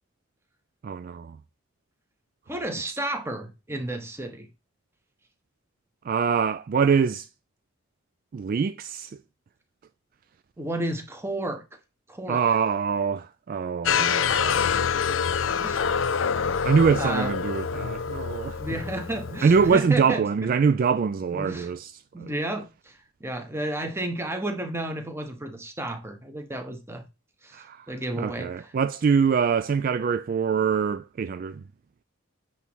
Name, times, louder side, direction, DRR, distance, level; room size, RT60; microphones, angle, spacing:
voice 1, 0.8-1.4 6.0-7.3 8.3-9.2 12.3-14.7 16.6-18.8 19.4-21.9 22.2-22.3 27.5-27.9 28.2-31.6, right 6 dB, 45° right, 0.3 m, -24 dB
voice 2, 2.5-4.5 10.6-11.6 12.1-12.4 14.0-14.2 15.5-15.9 16.5-16.7 17.0-17.3 18.6-20.2 21.3-21.7 22.1-27.0 27.4-28.5, right 1 dB, 10° right, 1.1 m, -32 dB
sound 1, 13.8-19.8, left 7 dB, 65° left, 0.5 m, -26 dB
9.1 x 3.1 x 6.0 m
head